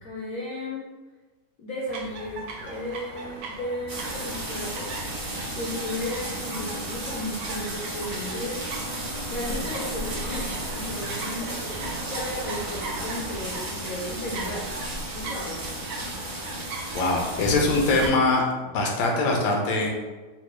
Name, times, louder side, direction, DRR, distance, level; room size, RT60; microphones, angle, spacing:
voice 1, 0.0-0.9 1.6-5.0 5.5-8.7 9.3-11.6 12.1-14.7 15.1-15.7, left 1 dB, 70° left, -5 dB, 0.8 m, -34 dB
sound 1, 1.9-18.2, right 3 dB, 75° right, 1.1 m, -39 dB
sound 2, 3.9-18.1, right 1 dB, 40° right, 0.5 m, -33 dB
voice 2, 16.9-18.4 18.7-19.9, left 2 dB, 90° left, 0 dB, 1.4 m, -22 dB
4.0 x 2.1 x 3.0 m, 1.3 s
omnidirectional pair, 2.1 m